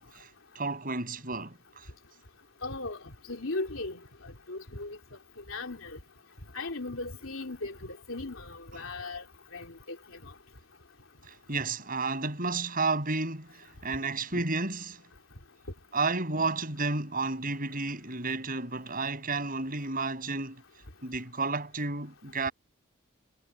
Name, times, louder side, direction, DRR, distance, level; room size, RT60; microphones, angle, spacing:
voice 1, 0.0-1.9 8.7-8.9 11.2-15.0 15.9-20.6 21.0-22.5, right 3 dB, 45° right, 7.6 m, -32 dB
voice 2, 2.6-5.0 5.5-6.0 6.5-9.2 9.5-10.3 14.3-14.4, left 2 dB, 85° left, 3.1 m, -38 dB
head